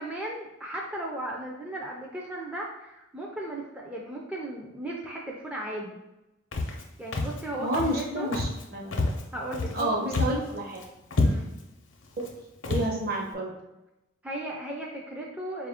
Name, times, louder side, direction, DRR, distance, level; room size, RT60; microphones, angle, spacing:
voice 1, 0.0-6.0 7.0-8.3 9.3-10.6 11.2-11.5 14.2-15.7, right 1 dB, 5° right, -3 dB, 0.3 m, -36 dB
Walk footsteps, 6.5-6.8 7.1-7.4 7.7-8.0 8.3-8.6 8.9-9.8 10.1-10.5 10.8-10.9 11.1-11.6 12.2-12.3 12.6-12.9, left 2 dB, 70° left, 0.6 m, -28 dB
voice 2, 7.6-8.9 9.7-10.8 12.7-13.5, right 1 dB, 50° right, -1 dB, 0.8 m, -29 dB
4.0 x 2.4 x 3.5 m, 0.96 s
head